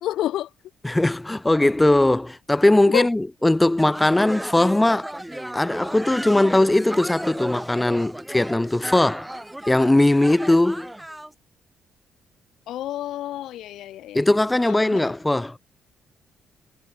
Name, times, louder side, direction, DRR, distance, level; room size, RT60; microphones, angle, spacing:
voice 1, 0.0-0.5 2.9-3.1 12.7-14.2 14.6-15.1, left 13 dB, 80° left, 3.2 m, -29 dB
voice 2, 0.8-5.1 5.5-9.3 9.7-10.9 14.1-15.6, left 1 dB, 10° left, 2.8 m, -19 dB
sound 1, 3.8-11.3, right 1 dB, 5° right, 4.8 m, -34 dB
cardioid pair, 90°, 0 cm